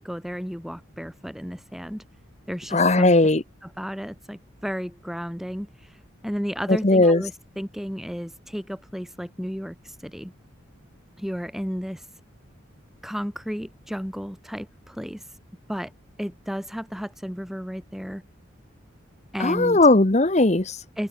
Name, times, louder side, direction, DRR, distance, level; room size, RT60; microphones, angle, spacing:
voice 1, 0.0-2.0 2.5-3.1 3.6-6.0 6.2-10.3 11.2-12.0 13.0-15.2 15.7-15.9 16.2-18.2 19.3-19.8 21.0-21.1, equal, ahead, 4.7 m, -33 dB
voice 2, 2.7-3.4 6.8-7.2 19.4-20.8, left 2 dB, 35° left, 1.1 m, -18 dB
open air
head